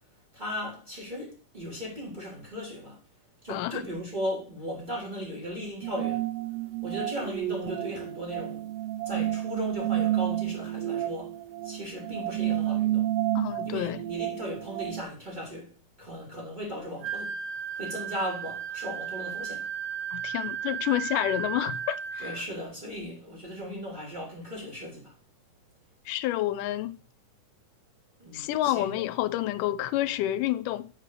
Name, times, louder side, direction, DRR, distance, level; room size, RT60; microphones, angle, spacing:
voice 1, 0.3-3.0 3.4-6.2 6.8-8.7 9.1-11.3 11.6-13.1 13.6-15.7 16.0-17.3 17.8-19.7 22.2-25.1 28.2-28.9, equal, 15° right, 3.6 m, -37 dB
voice 2, 3.5-3.8 13.4-14.0 20.1-22.4 26.1-27.0 28.3-30.9, left 14 dB, 80° left, 2.1 m, -29 dB
sound 1, 5.8-15.0, right 14 dB, 90° right, 1.4 m, -30 dB
Wind instrument woodwind instrument, 17.0-22.5, right 7 dB, 65° right, 1.8 m, -35 dB
7.3 x 4.9 x 6.7 m
omnidirectional pair, 3.8 m